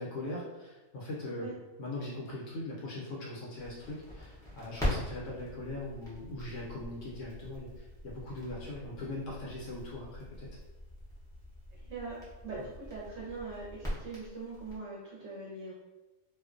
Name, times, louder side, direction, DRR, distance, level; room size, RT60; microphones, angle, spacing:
voice 1, 0.0-1.5 1.8-10.5, left 2 dB, 70° left, -4 dB, 0.9 m, -40 dB
Crackle, 3.6-14.8, left 1 dB, 5° left, 0.4 m, -42 dB
voice 2, 11.7-15.7, right 3 dB, 65° right, -7 dB, 0.8 m, -42 dB
2.4 x 2.1 x 2.4 m, 1.1 s
omnidirectional pair, 1.4 m